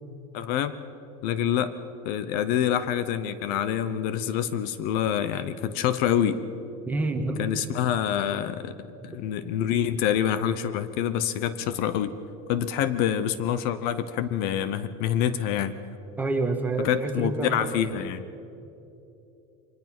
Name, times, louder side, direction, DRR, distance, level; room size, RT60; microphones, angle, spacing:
voice 1, 0.3-0.7 1.2-1.7 2.0-6.4 7.4-8.8 9.0-12.1 12.5-15.8 16.8-18.2, left 10 dB, 55° left, 13 dB, 0.9 m, -26 dB
voice 2, 6.9-7.4 16.2-17.7, right 2 dB, 10° right, 3 dB, 1.6 m, -27 dB
24.0 x 20.0 x 6.0 m, 2.9 s
cardioid pair, 160°, 18 cm